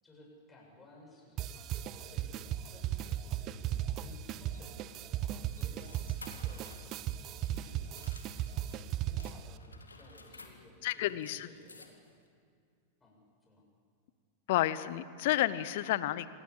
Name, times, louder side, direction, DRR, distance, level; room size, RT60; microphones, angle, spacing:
voice 1, 0.0-6.9 7.5-8.0 9.1-12.0 13.0-13.6, left 2 dB, 15° left, -2 dB, 7.9 m, -58 dB
sound 1, 1.4-9.6, right 11 dB, 35° right, 0.9 m, -37 dB
sound 2, 4.1-8.8 9.2-12.3, left 3 dB, 75° left, 2.2 m, -56 dB
voice 2, 10.8-11.5 14.5-16.3, left 14 dB, 50° left, 16 dB, 1.0 m, -30 dB
27.0 x 20.0 x 8.5 m, 2.3 s
figure-of-eight pair, 90°, 0 cm